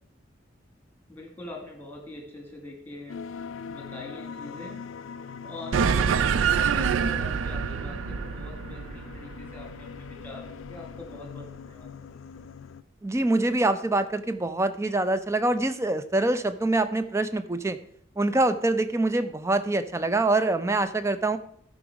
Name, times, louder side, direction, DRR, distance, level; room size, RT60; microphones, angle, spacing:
voice 1, 1.1-3.2 3.7-4.8 5.4-10.4 10.7-11.9, left 2 dB, 10° left, 2 dB, 1.9 m, -43 dB
sound 1, 3.1-12.8, left 6 dB, 80° left, 0.4 m, -42 dB
sound 2, 5.7-10.5, right 6 dB, 80° right, 0.4 m, -26 dB
voice 2, 13.0-17.8 18.2-21.4, right 2 dB, 15° right, 11 dB, 0.4 m, -25 dB
12.5 x 5.1 x 4.8 m, 0.67 s
head